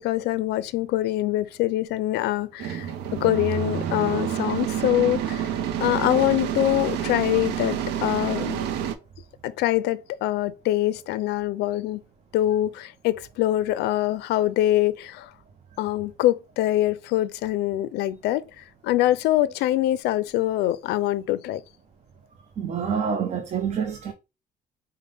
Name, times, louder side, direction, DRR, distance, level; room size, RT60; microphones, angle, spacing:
voice 1, 0.0-2.9 3.1-5.5 5.8-8.6 9.4-12.0 12.3-15.3 15.8-21.6, left 14 dB, 80° left, 0.4 m, -24 dB
sound 1, 2.6-9.0, right 9 dB, 90° right, 0.5 m, -28 dB
voice 2, 22.6-24.1, right 6 dB, 40° right, 0.6 m, -27 dB
5.2 x 2.1 x 3.3 m
cardioid pair, 110°, 17 cm